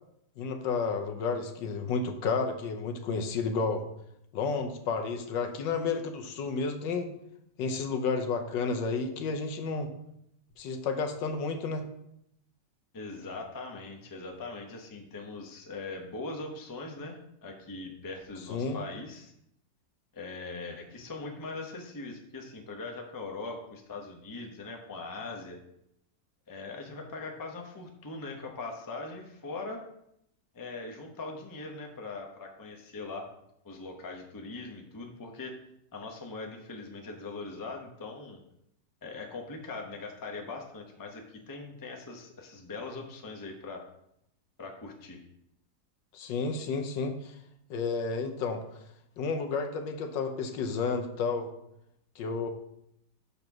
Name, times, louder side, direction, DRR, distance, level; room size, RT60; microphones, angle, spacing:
voice 1, 0.4-3.8 4.3-7.1 7.6-9.9 10.6-11.8 18.5-18.8 46.1-47.3 47.7-48.6 49.2-51.5 52.2-52.5, left 4 dB, 85° left, 5 dB, 1.5 m, -31 dB
voice 2, 12.9-19.3 20.1-25.6 26.5-29.8 30.5-33.3 33.6-35.5 35.9-38.4 39.0-43.8 44.6-45.2, left 3 dB, 20° left, 2 dB, 0.5 m, -41 dB
6.9 x 4.0 x 5.9 m, 0.78 s
omnidirectional pair, 1.9 m